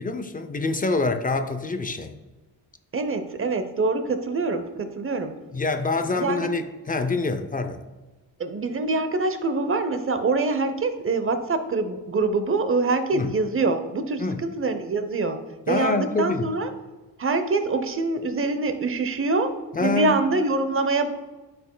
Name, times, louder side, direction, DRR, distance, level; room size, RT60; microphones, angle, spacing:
voice 1, 0.0-2.1 5.5-7.8 13.1-13.3 14.2-14.4 15.7-16.5 19.7-20.2, left 3 dB, 20° left, 8 dB, 0.5 m, -26 dB
voice 2, 2.9-5.3 6.1-6.5 8.4-15.4 15.7-16.7 17.2-19.5 19.8-21.1, right 3 dB, 30° right, 10 dB, 0.7 m, -25 dB
10.0 x 4.4 x 2.2 m, 1.2 s
cardioid pair, 75°, 43 cm